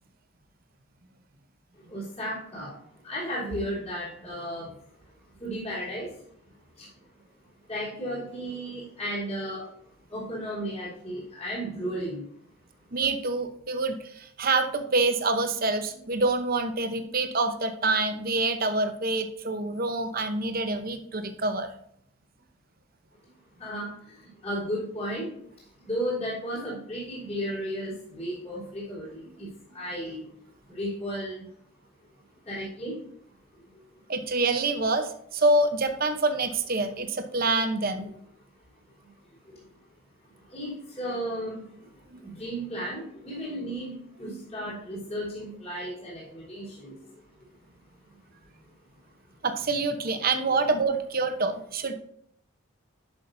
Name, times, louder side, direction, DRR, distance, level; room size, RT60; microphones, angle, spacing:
voice 1, 1.9-4.7 5.4-6.1 6.8-6.9 7.7-9.7 10.1-12.2 23.6-25.4 25.8-30.3 30.7-31.5 32.5-33.0 33.7-33.8 38.0-38.1 39.0-39.1 39.4-39.6 40.2-47.2 48.1-48.2, equal, 30° left, -8 dB, 3.6 m, -34 dB
voice 2, 12.9-21.7 34.1-38.1 42.1-42.2 49.4-51.9, right 3 dB, 40° right, 7 dB, 0.8 m, -26 dB
11.0 x 6.1 x 2.6 m, 0.68 s
head